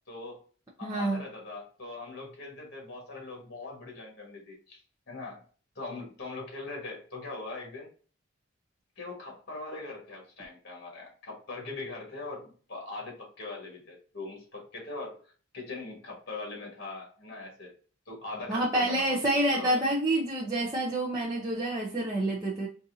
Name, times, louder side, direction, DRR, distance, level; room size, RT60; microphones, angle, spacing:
voice 1, 0.1-0.4 0.8-5.4 5.8-7.9 9.0-17.7 18.1-19.2 19.5-19.8, left 3 dB, 50° left, -1 dB, 1.6 m, -41 dB
voice 2, 0.8-1.2 18.5-22.7, right 1 dB, 15° right, -5 dB, 0.6 m, -28 dB
4.1 x 2.6 x 2.7 m, 0.41 s
head